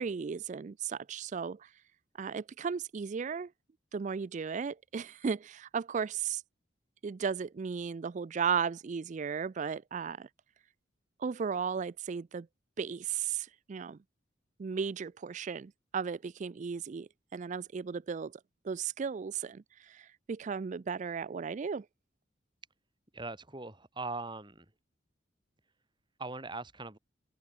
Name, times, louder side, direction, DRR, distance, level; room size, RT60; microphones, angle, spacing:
voice 1, 0.0-1.7 2.2-3.5 3.9-6.4 7.0-10.3 11.2-12.5 12.8-14.0 14.6-18.4 18.6-21.9, right 6 dB, 40° right, 0.4 m, -35 dB
voice 2, 23.1-24.6 26.2-27.0, right 3 dB, 25° right, 3.2 m, -40 dB
open air
head